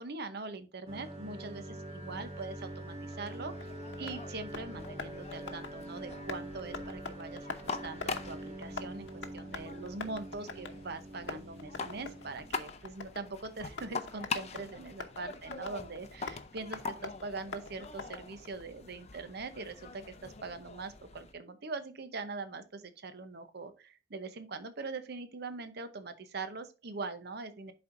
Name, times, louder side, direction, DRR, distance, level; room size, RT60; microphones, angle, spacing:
voice 1, 0.0-3.7 4.0-27.7, right 3 dB, 55° right, 10 dB, 0.8 m, -42 dB
sound 1, 0.9-12.5, right 1 dB, 35° right, 1.5 m, -45 dB
sound 2, 2.1-21.3, left 4 dB, 35° left, 0.6 m, -44 dB
Tap, 3.1-18.6, left 4 dB, 70° left, 0.9 m, -47 dB
11.0 x 4.4 x 2.6 m, 0.34 s
head